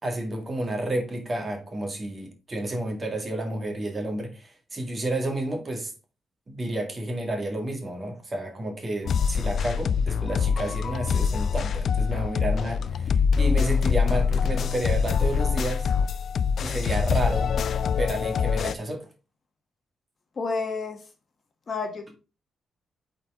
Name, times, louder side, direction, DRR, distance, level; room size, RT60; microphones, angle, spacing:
voice 1, 0.0-5.9 6.5-15.9 16.6-17.6 17.9-19.1, right 1 dB, 25° right, 1.9 m, -31 dB
sound 1, 9.0-18.7, left 6 dB, 55° left, 0.3 m, -24 dB
voice 2, 20.4-21.0 21.7-22.2, left 4 dB, 40° left, 1.2 m, -30 dB
8.4 x 4.3 x 3.6 m
cardioid pair, 145°, 0 cm